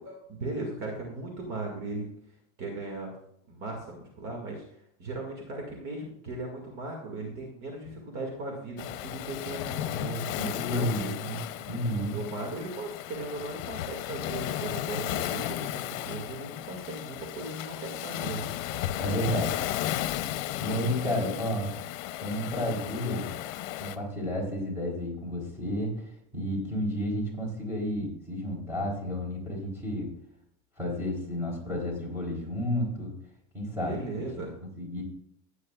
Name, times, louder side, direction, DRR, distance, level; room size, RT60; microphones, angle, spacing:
voice 1, 0.0-2.0 2.6-3.1 3.5-4.6 5.0-11.1 12.1-18.5 20.8-21.1 33.8-34.5, right 2 dB, 45° right, 0 dB, 2.2 m, -37 dB
Waves surf, 8.8-24.0, left 13 dB, 70° left, 0.8 m, -34 dB
voice 2, 10.4-12.2 19.0-19.6 20.6-21.7 22.2-23.3 23.8-25.9 26.3-30.1 30.8-33.1 33.5-34.0 34.4-34.5 34.8-35.0, equal, 5° right, -3 dB, 3.8 m, -31 dB
15.5 x 9.4 x 2.4 m, 0.75 s
cardioid pair, 155°, 41 cm